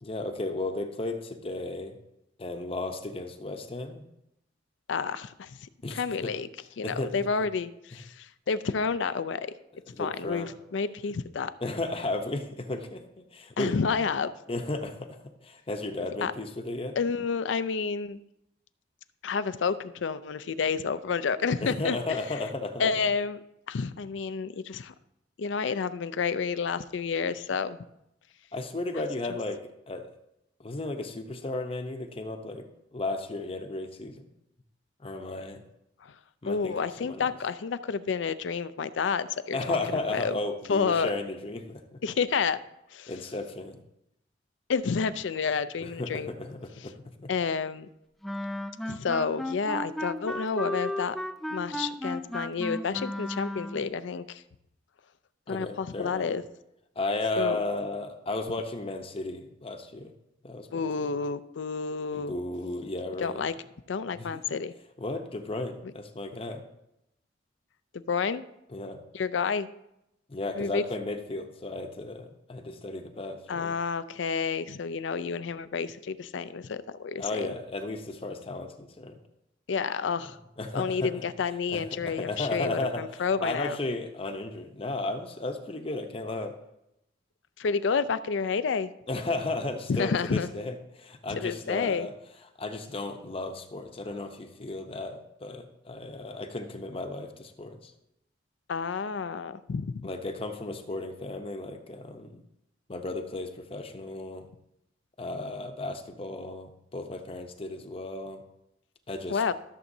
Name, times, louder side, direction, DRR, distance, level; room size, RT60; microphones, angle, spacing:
voice 1, 0.0-2.0 2.4-4.0 5.8-6.3 6.8-7.5 9.9-10.5 11.6-13.8 14.5-16.9 21.6-22.9 28.5-29.6 29.9-30.1 30.6-32.7 32.9-34.2 35.0-35.6 36.4-37.3 39.5-42.0 43.1-43.8 45.8-47.3 55.5-56.3 57.0-60.1 60.4-61.1 62.1-63.4 64.1-64.3 65.0-66.6 68.7-69.0 70.3-73.7 77.2-79.2 80.6-81.2 81.7-86.5 89.1-92.1 92.6-97.9 100.0-102.4 102.9-104.5 105.2-108.4 109.1-109.5, left 2 dB, 30° left, 6 dB, 0.7 m, -34 dB
voice 2, 4.9-5.6 5.9-6.5 6.8-9.5 10.0-11.5 13.6-14.3 16.2-16.3 17.0-18.2 19.2-22.2 22.8-23.4 23.7-24.9 25.4-27.8 36.0-36.1 36.5-40.4 40.7-41.1 42.0-42.6 42.9-43.1 44.7-46.3 47.3-47.9 48.8-51.2 51.5-54.4 55.5-56.4 57.4-57.6 60.7-62.4 63.2-63.5 63.9-64.7 68.1-68.4 69.1-69.7 70.6-70.8 73.5-77.5 79.7-80.4 80.7-83.8 87.6-88.9 89.9-90.5 91.3-92.1 98.7-100.1 109.3-109.5, left 5 dB, 75° left, 14 dB, 0.4 m, -30 dB
Wind instrument woodwind instrument, 48.2-53.9, left 1 dB, ahead, 0.3 m, -34 dB
14.0 x 7.0 x 2.7 m, 0.84 s
head